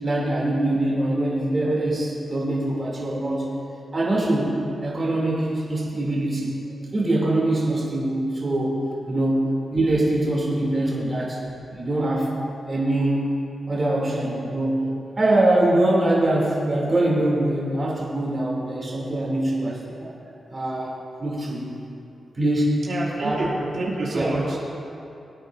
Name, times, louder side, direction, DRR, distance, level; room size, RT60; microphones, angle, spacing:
voice 1, 0.0-3.4 3.9-4.6 4.8-6.6 6.9-9.4 9.7-11.4 11.7-12.3 12.7-13.3 13.7-14.8 15.2-20.1 20.5-20.9 21.2-21.7 22.3-22.9 23.2-23.4 24.1-24.3, right 1 dB, 35° right, -5 dB, 3.1 m, -23 dB
voice 2, 22.8-24.6, right 2 dB, 65° right, -7 dB, 2.9 m, -27 dB
23.0 x 9.1 x 2.7 m, 2.7 s
wide cardioid pair, 105°, 0 cm